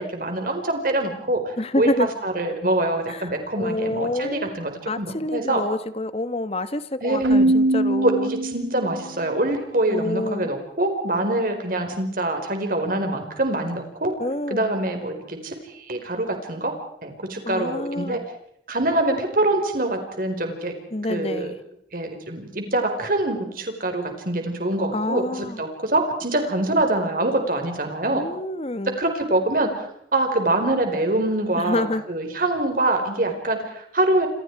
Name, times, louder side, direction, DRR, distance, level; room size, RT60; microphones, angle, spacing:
voice 1, 0.0-5.6 7.0-7.5 8.0-14.1 14.5-16.7 17.0-18.2 18.7-20.7 21.1-21.5 21.9-28.2 29.0-34.3, right 2 dB, 50° right, 5 dB, 4.6 m, -24 dB
voice 2, 1.6-2.1 3.1-8.3 9.9-10.5 14.2-14.6 17.4-18.2 20.9-21.6 24.9-25.6 28.1-29.0 31.6-32.0, left 1 dB, 35° left, 13 dB, 1.2 m, -27 dB
Keyboard (musical), 7.2-9.1, right 1 dB, 90° right, 1.0 m, -21 dB
28.0 x 27.0 x 4.8 m, 0.71 s
head